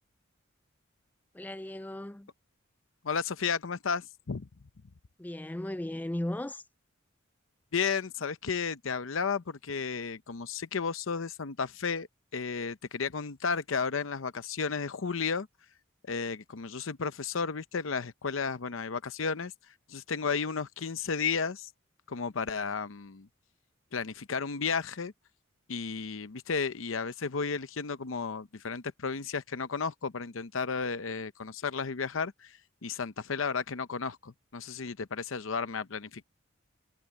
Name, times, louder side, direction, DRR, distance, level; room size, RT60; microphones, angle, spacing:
voice 1, 1.3-2.3 5.2-6.6, left 1 dB, 10° left, 0.4 m, -36 dB
voice 2, 3.0-4.5 7.7-12.1 12.3-15.5 16.1-19.5 19.9-21.7 22.1-23.3 23.9-25.1 25.7-36.2, left 5 dB, 80° left, 0.7 m, -33 dB
head